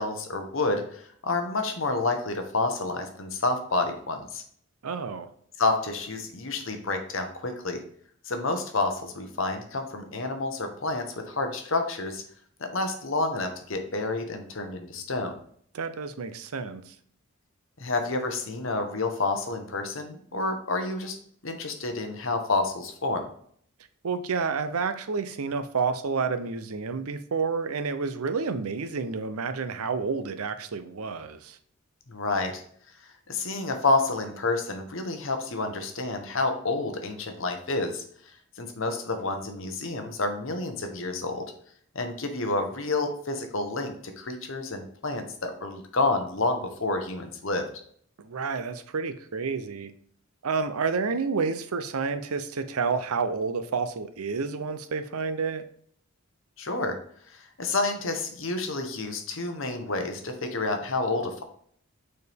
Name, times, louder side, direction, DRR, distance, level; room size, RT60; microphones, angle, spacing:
voice 1, 0.0-4.4 5.6-7.8 8.2-12.2 12.6-15.3 17.8-21.2 21.4-23.3 32.1-32.6 33.0-38.0 38.6-41.5 41.9-47.7 56.6-57.0 57.3-61.4, left 3 dB, 60° left, 6 dB, 1.0 m, -29 dB
voice 2, 4.8-5.3 15.7-16.9 24.0-31.6 48.2-49.9 50.4-55.6, right 5 dB, 85° right, 10 dB, 0.6 m, -29 dB
6.6 x 4.4 x 3.5 m, 0.62 s
head